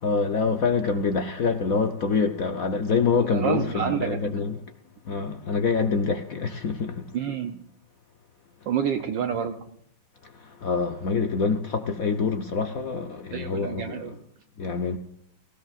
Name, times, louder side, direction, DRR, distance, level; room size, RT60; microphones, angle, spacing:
voice 1, 0.0-4.6 5.0-7.2 10.2-14.2 14.6-15.0, left 4 dB, 60° left, 0.9 m, -26 dB
voice 2, 3.1-4.3 7.1-7.6 8.7-9.6 13.3-14.1, right 8 dB, 65° right, 1.4 m, -28 dB
18.5 x 16.0 x 2.5 m
omnidirectional pair, 2.4 m